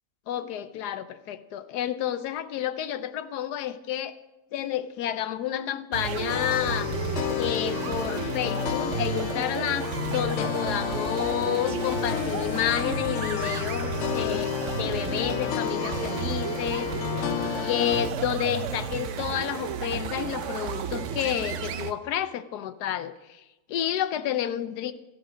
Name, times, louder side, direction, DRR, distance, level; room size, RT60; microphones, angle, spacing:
voice 1, 0.3-4.2 4.5-6.9 7.3-14.5 14.8-23.4 23.7-24.9, left 10 dB, 85° left, 12 dB, 1.2 m, -30 dB
sound 1, 5.9-21.9, right 8 dB, 60° right, 0.9 m, -33 dB
sound 2, 6.3-18.1, left 10 dB, 70° left, 0.6 m, -31 dB
13.5 x 11.5 x 5.0 m, 1.1 s
omnidirectional pair, 1.7 m